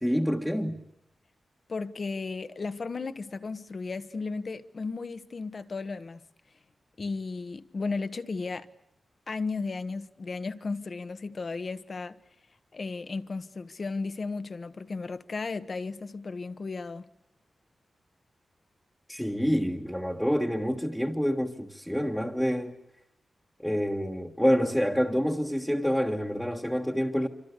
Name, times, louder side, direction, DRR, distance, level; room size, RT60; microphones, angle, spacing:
voice 1, 0.0-0.8 19.1-22.7 23.6-27.3, equal, ahead, 1.5 m, -27 dB
voice 2, 1.7-6.2 7.0-8.7 9.3-12.2 12.7-17.0, left 4 dB, 45° left, 1.3 m, -34 dB
27.0 x 25.5 x 8.2 m
wide cardioid pair, 125°, 0 cm